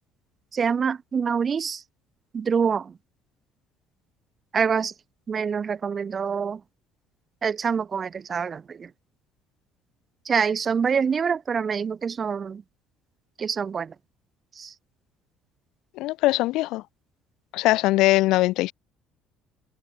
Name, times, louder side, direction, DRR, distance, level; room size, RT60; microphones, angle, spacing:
voice 1, 0.5-1.8 2.3-2.9 4.5-4.9 5.3-6.6 7.4-8.9 10.2-12.6 13.4-13.9 14.6-14.7, right 6 dB, 40° right, 2.7 m, -26 dB
voice 2, 16.0-16.8 17.5-18.7, left 18 dB, 65° left, 2.4 m, -21 dB
open air
hypercardioid pair, 55°, 0 cm